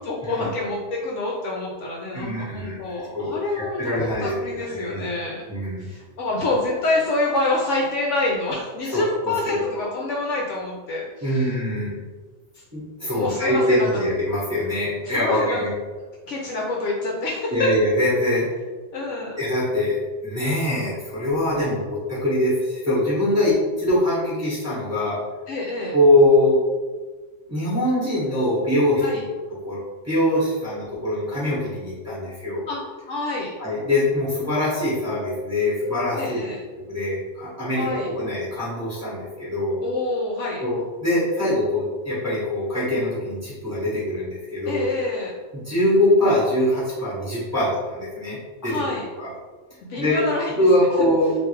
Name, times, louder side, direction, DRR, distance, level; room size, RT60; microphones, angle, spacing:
voice 1, 0.0-5.4 5.8-11.5 12.5-12.6 13.1-14.1 15.1-15.6 16.3-17.7 18.9-19.4 25.5-26.0 29.0-29.2 32.7-33.5 36.2-36.6 37.8-38.1 39.8-40.6 44.7-45.3 48.6-49.0 49.8-51.1, left 2 dB, 65° left, -2 dB, 0.8 m, -27 dB
voice 2, 2.1-2.8 3.1-5.0 5.5-5.8 8.8-9.9 11.2-11.9 12.7-15.7 17.5-18.5 19.4-23.5 23.8-25.2 25.9-26.6 27.5-29.3 29.6-32.6 33.6-36.4 36.9-39.8 40.6-44.8 45.5-48.4 48.6-48.8 49.2-49.3 50.0-50.2 50.6-51.3, left 1 dB, 10° right, -8 dB, 1.1 m, -23 dB
3.3 x 2.6 x 3.2 m, 1.3 s
omnidirectional pair, 1.5 m